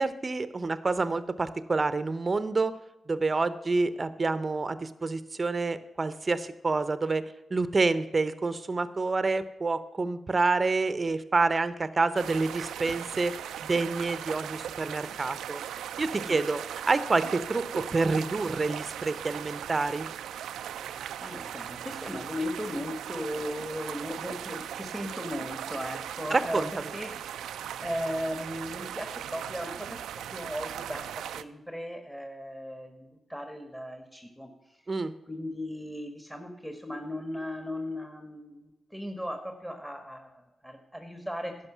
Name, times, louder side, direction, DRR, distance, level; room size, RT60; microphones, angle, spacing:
voice 1, 0.0-2.7 3.1-7.2 7.5-13.4 13.6-15.6 16.0-16.6 16.9-20.1 26.3-26.7 34.9-35.1, right 3 dB, 40° right, 14 dB, 0.7 m, -28 dB
sound 1, 12.2-31.4, right 10 dB, 85° right, 0.3 m, -38 dB
voice 2, 21.2-27.1 27.5-30.0 30.3-34.5 35.3-41.5, equal, 5° left, 5 dB, 1.5 m, -37 dB
11.0 x 5.4 x 7.2 m, 0.95 s
supercardioid pair, 50°, 0 cm